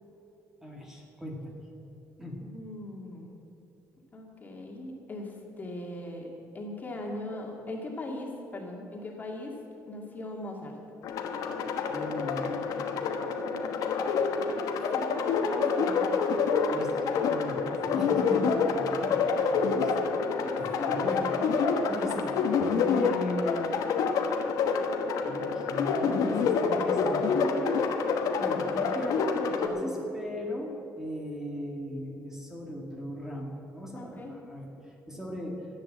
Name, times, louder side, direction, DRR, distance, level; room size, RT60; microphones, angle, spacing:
voice 1, 0.6-1.6 2.2-2.4 11.9-12.7 16.7-19.2 19.5-20.2 20.6-22.4 22.8-23.8 25.2-27.9 28.4-35.7, equal, 10° right, -1 dB, 2.0 m, -38 dB
voice 2, 2.4-3.4 4.1-9.6 9.9-10.7 13.4-13.8 14.6-15.2 15.4-16.1 20.4-21.0 21.6-22.1 33.9-34.3, left 1 dB, 30° left, 0 dB, 2.3 m, -40 dB
sound 1, 11.0-29.7, left 5 dB, 75° left, 1.3 m, -27 dB
14.0 x 8.8 x 7.6 m, 3.0 s
cardioid pair, 120°, 6 cm